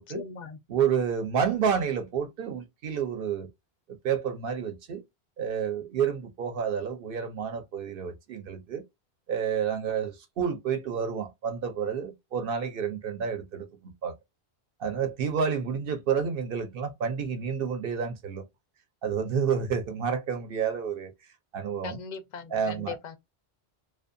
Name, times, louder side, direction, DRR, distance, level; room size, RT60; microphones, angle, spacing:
voice 1, 0.0-0.6 21.8-23.2, left 6 dB, 55° left, 0.5 m, -39 dB
voice 2, 0.7-3.5 3.9-5.0 5.4-8.8 9.3-13.7 14.0-14.1 14.8-18.4 19.0-21.1 21.5-22.0 22.5-23.0, right 7 dB, 65° right, 0.7 m, -29 dB
2.6 x 2.3 x 2.5 m
omnidirectional pair, 1.1 m